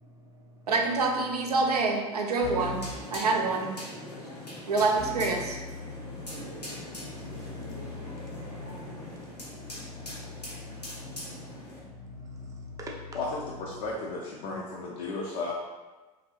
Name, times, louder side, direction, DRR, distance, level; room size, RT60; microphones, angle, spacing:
voice 1, 0.0-0.6 4.0-4.1 6.3-13.2, right 1 dB, 15° right, -1 dB, 0.5 m, -50 dB
voice 2, 0.7-2.8 3.1-3.8 4.7-5.6, right 3 dB, 75° right, 1 dB, 0.5 m, -26 dB
Keyboard (musical), 2.4-3.0 5.0-13.9, left 3 dB, 70° left, 1.0 m, -42 dB
sound 1, 2.6-11.8, left 1 dB, 85° left, 0.9 m, -42 dB
voice 3, 13.1-15.5, left 3 dB, 45° left, -3 dB, 0.5 m, -34 dB
2.9 x 2.7 x 2.9 m, 1.2 s
figure-of-eight pair, 80°, 20 cm